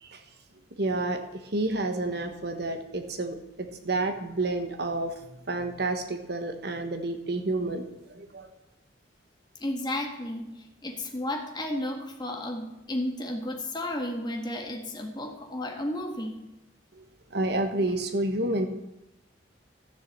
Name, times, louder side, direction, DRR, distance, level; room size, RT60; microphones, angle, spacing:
voice 1, 0.8-1.2 1.5-5.1 5.5-8.5 16.9-17.0 17.3-18.7, right 2 dB, 60° right, 7 dB, 1.4 m, -29 dB
voice 2, 9.6-16.4, left 1 dB, 25° left, 2 dB, 1.7 m, -33 dB
13.0 x 7.0 x 7.6 m, 0.92 s
head